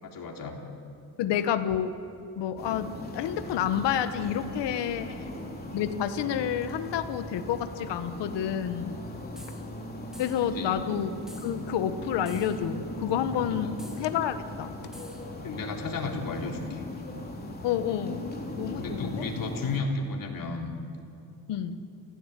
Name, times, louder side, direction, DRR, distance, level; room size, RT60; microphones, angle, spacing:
voice 1, 0.0-0.6 5.0-5.2 10.5-10.9 13.6-13.8 15.4-16.8 18.8-20.7, left 3 dB, 55° left, 1 dB, 3.6 m, -33 dB
voice 2, 1.2-2.0 2.4-5.1 5.7-8.9 10.2-11.1 11.4-14.7 17.6-18.3 18.6-19.3 21.5-21.8, left 9 dB, 85° left, 9 dB, 1.4 m, -29 dB
sound 1, 2.6-19.8, left 1 dB, 25° left, 3.3 m, -39 dB
sound 2, 9.4-9.6 10.1-10.5 11.3-11.6 12.3-12.6 13.8-14.1 14.9-15.3, equal, ahead, 2.7 m, -49 dB
29.0 x 16.5 x 8.3 m, 2.7 s
cardioid pair, 130°, 41 cm